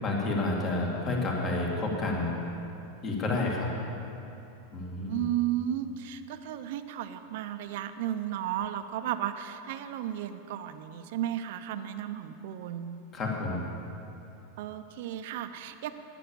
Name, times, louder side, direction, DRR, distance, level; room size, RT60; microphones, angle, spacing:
voice 1, 0.0-2.3 3.0-3.7 4.7-5.3 13.1-13.6, left 2 dB, 30° left, -1 dB, 2.2 m, -30 dB
voice 2, 5.1-13.0 14.6-15.9, right 11 dB, 65° right, 9 dB, 0.7 m, -34 dB
10.0 x 10.0 x 7.1 m, 2.8 s
supercardioid pair, 140°, 0 cm